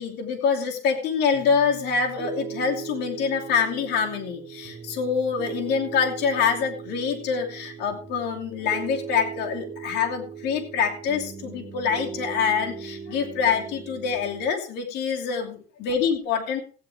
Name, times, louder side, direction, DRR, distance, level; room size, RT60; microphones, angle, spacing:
voice 1, 0.0-16.6, left 6 dB, 80° left, 1 dB, 2.8 m, -25 dB
Piano, 1.3-14.4, right 7 dB, 30° right, 2.5 m, -39 dB
15.5 x 9.4 x 3.5 m, 0.37 s
cardioid pair, 110°, 17 cm